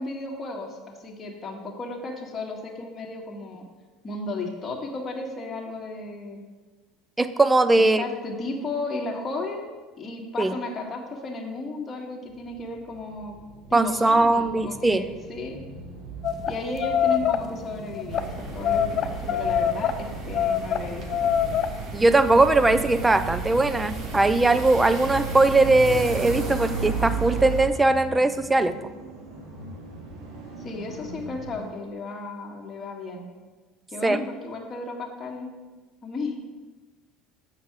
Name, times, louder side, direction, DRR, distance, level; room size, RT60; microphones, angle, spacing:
voice 1, 0.0-3.6 4.0-6.5 8.0-9.7 10.0-13.4 13.7-15.6 16.5-21.3 30.6-33.3 33.9-35.5 36.0-36.4, left 2 dB, 30° left, 0 dB, 1.9 m, -34 dB
voice 2, 7.2-8.0 10.4-10.5 13.7-15.0 21.9-28.7 34.0-34.2, right 2 dB, 15° right, 11 dB, 0.6 m, -20 dB
sound 1, 12.2-31.7, right 3 dB, 75° right, 2.3 m, -42 dB
sound 2, 16.2-16.5 16.8-17.4 18.0-18.2 18.6-19.9 20.3-21.7, left 9 dB, 45° left, 0.6 m, -24 dB
sound 3, 18.1-27.7, right 4 dB, 55° right, 2.1 m, -33 dB
7.3 x 5.9 x 6.2 m, 1.3 s
hypercardioid pair, 75°, 0 cm